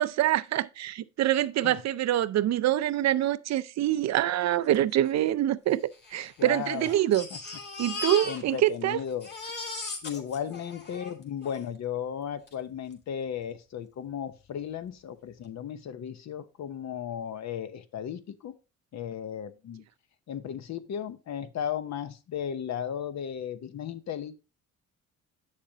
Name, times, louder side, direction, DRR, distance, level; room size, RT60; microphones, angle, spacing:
voice 1, 0.0-5.8 6.1-7.3 7.8-9.0, right 12 dB, 60° right, 0.5 m, -25 dB
Crying sobbing, 4.7-4.8 5.0-5.1 5.9-8.8 9.1-11.6 12.5-12.6 12.9-13.0, left 3 dB, 35° left, 2.5 m, -38 dB
voice 2, 6.4-7.0 7.3-7.4 8.2-9.3 10.0-18.6 18.9-19.8 20.3-24.4, left 8 dB, 65° left, 0.9 m, -35 dB
8.2 x 6.7 x 2.8 m
cardioid pair, 90°, 30 cm